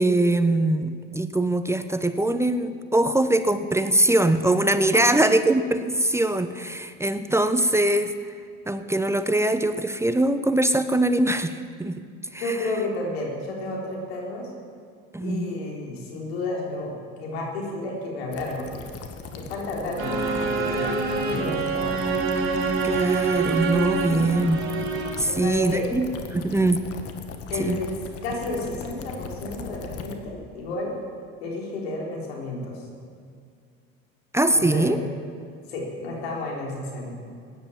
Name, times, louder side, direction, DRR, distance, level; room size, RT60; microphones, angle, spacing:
voice 1, 0.0-8.1 8.7-12.0 12.3-12.6 15.1-15.5 22.8-24.6 25.2-26.8 27.6-27.8 34.3-35.0, right 1 dB, 10° right, 10 dB, 0.9 m, -22 dB
voice 2, 4.9-5.4 12.4-14.5 15.2-16.9 17.2-18.9 19.3-22.0 24.0-24.2 25.3-25.9 27.5-27.9 28.2-30.9 31.4-32.8 34.5-35.0 35.7-37.1, left 2 dB, 90° left, -1 dB, 4.0 m, -31 dB
sound 1, 18.3-30.1, left 5 dB, 50° left, 1.8 m, -39 dB
sound 2, 20.0-25.4, right 4 dB, 45° right, 3.0 m, -26 dB
16.0 x 11.0 x 7.3 m, 2.2 s
supercardioid pair, 80°, 30 cm